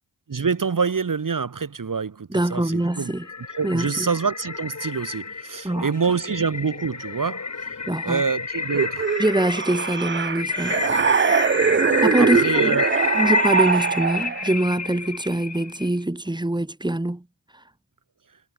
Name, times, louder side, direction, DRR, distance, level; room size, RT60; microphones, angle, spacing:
voice 1, 0.3-3.1 3.5-9.1 12.2-13.1, right 5 dB, 45° right, 2.0 m, -26 dB
voice 2, 2.3-3.3 3.6-4.1 5.6-5.9 7.9-8.2 9.2-10.8 12.0-12.8 13.1-17.2, right 1 dB, 10° right, 2.6 m, -24 dB
sound 1, 2.6-15.9, left 4 dB, 40° left, 2.2 m, -29 dB
sound 2, 8.7-14.5, right 6 dB, 25° right, 0.6 m, -22 dB
cardioid pair, 45°, 43 cm